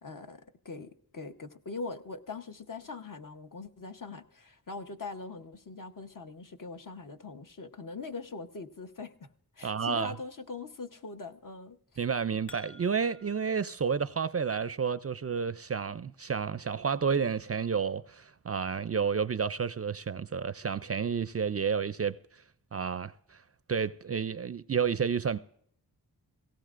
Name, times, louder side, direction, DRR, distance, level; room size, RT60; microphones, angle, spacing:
voice 1, 0.0-9.3 9.6-11.8, left 4 dB, 55° left, 1.0 m, -42 dB
voice 2, 9.6-10.1 12.0-22.2 22.7-23.4 23.7-25.4, right 6 dB, 40° right, 0.4 m, -30 dB
sound 1, 12.5-13.5, left 2 dB, 30° left, 2.0 m, -52 dB
18.0 x 17.0 x 2.5 m
wide cardioid pair, 80°, 39 cm